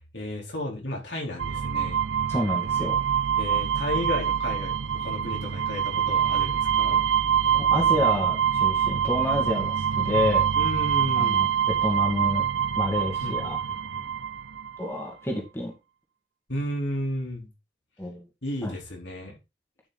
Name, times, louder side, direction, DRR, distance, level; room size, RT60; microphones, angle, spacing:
voice 1, 0.1-2.0 3.4-7.0 10.5-11.5 13.2-14.0 16.5-17.5 18.4-19.4, left 1 dB, 70° left, -1 dB, 4.1 m, -33 dB
sound 1, 1.4-14.8, right 8 dB, 85° right, 0.5 m, -25 dB
voice 2, 2.3-3.0 3.5-3.6 7.5-10.4 11.2-11.5 11.8-12.4 12.7-13.6 14.8-15.7 18.0-18.2 18.6-18.7, left 1 dB, 15° left, 0 dB, 2.2 m, -29 dB
11.0 x 6.0 x 4.1 m, 0.25 s
head